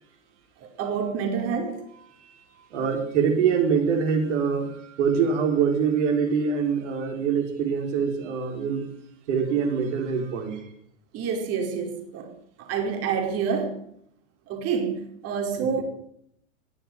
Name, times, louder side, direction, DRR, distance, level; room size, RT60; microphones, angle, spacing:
voice 1, 0.6-1.8 11.1-12.3 12.6-13.8 14.5-15.8, right 6 dB, 40° right, 3 dB, 4.7 m, -28 dB
voice 2, 2.7-8.9 9.3-10.7 15.6-15.8, right 6 dB, 60° right, 3 dB, 5.1 m, -24 dB
20.0 x 7.3 x 9.3 m, 0.72 s
hypercardioid pair, 120°, 39 cm